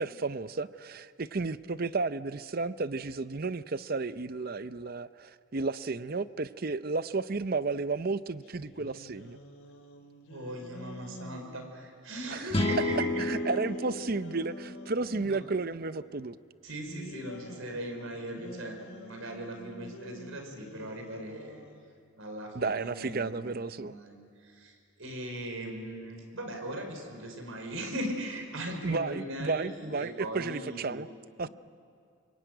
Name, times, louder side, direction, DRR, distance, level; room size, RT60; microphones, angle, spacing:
voice 1, 0.0-9.4 12.3-12.7 13.2-16.4 22.5-23.9 28.8-31.1 31.4-31.5, right 3 dB, 45° right, 14 dB, 0.6 m, -33 dB
sound 1, 8.4-11.7 12.6-15.5 16.7-21.9, equal, 90° left, 3.1 m, -47 dB
voice 2, 10.2-13.2 15.3-15.4 16.6-21.6 22.2-24.2 24.6-24.7 25.0-31.0, right 1 dB, 75° right, 4 dB, 5.0 m, -39 dB
sound 2, 12.5-15.8, left 2 dB, 25° left, 1.3 m, -33 dB
26.5 x 23.5 x 9.3 m, 2.4 s
head